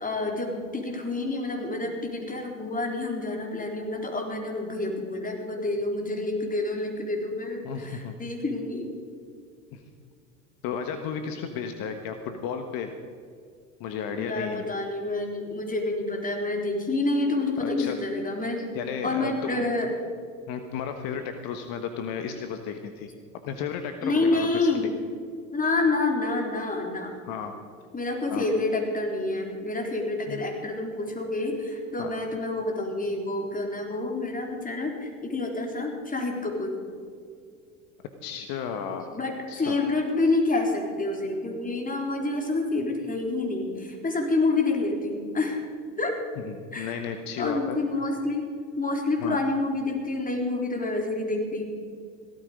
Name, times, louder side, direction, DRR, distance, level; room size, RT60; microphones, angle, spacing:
voice 1, 0.0-9.0 14.2-18.7 19.0-19.9 24.0-25.0 25.5-27.1 27.9-36.7 39.1-45.6 46.0-46.2 46.7-47.0 47.4-51.7, left 2 dB, 20° left, 1 dB, 3.9 m, -28 dB
voice 2, 7.6-8.1 9.7-9.8 10.6-12.9 13.8-14.6 17.6-17.9 18.7-19.7 20.5-23.1 23.4-24.9 27.2-27.5 28.3-28.5 30.3-30.4 32.0-32.1 38.2-39.1 39.5-39.8 46.4-47.8 49.2-49.4, left 7 dB, 60° left, 7 dB, 1.4 m, -33 dB
16.5 x 13.5 x 5.1 m, 2.3 s
hypercardioid pair, 85°, 40 cm